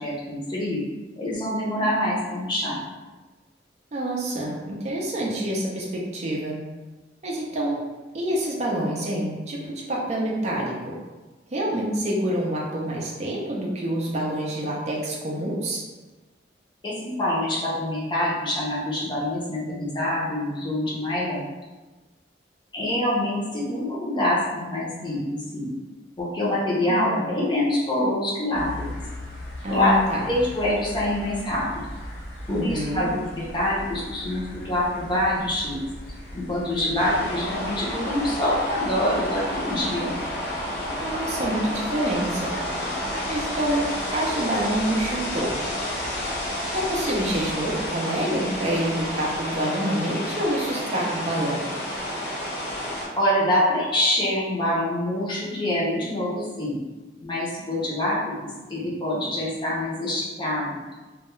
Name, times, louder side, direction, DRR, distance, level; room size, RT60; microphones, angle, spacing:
voice 1, 0.0-0.8 1.2-2.8 16.8-21.4 22.7-25.2 25.5-25.7 26.2-28.8 29.7-29.9 30.3-31.9 32.5-35.8 36.3-40.2 53.1-56.8 57.2-60.8, left 1 dB, 25° left, -6 dB, 0.6 m, -25 dB
voice 2, 3.9-6.6 7.2-7.8 8.1-11.0 11.5-15.8 26.9-27.4 29.6-30.3 32.5-33.1 40.9-42.5 43.3-45.6 46.7-51.6, right 1 dB, 40° right, -3 dB, 0.4 m, -27 dB
sound 1, 28.5-47.9, left 1 dB, 80° left, 1.0 m, -40 dB
sound 2, 37.0-53.1, left 1 dB, 60° left, 1.0 m, -30 dB
2.2 x 2.2 x 3.0 m, 1.2 s
head